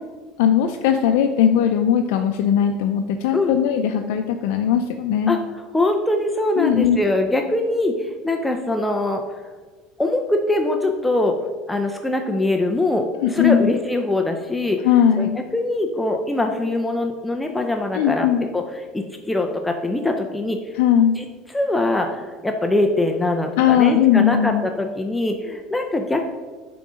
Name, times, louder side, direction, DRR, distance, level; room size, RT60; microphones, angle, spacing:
voice 1, 0.4-5.3 6.6-7.0 13.2-13.7 14.8-15.4 17.9-18.5 20.7-21.2 23.6-24.6, left 9 dB, 80° left, 5 dB, 0.4 m, -18 dB
voice 2, 5.7-9.2 10.0-11.4 11.7-14.9 15.2-18.3 18.5-18.6 18.9-20.8 21.2-21.3 21.5-26.2, left 2 dB, 5° left, 3 dB, 0.4 m, -22 dB
9.1 x 3.8 x 5.0 m, 1.4 s
cardioid pair, 145°, 0 cm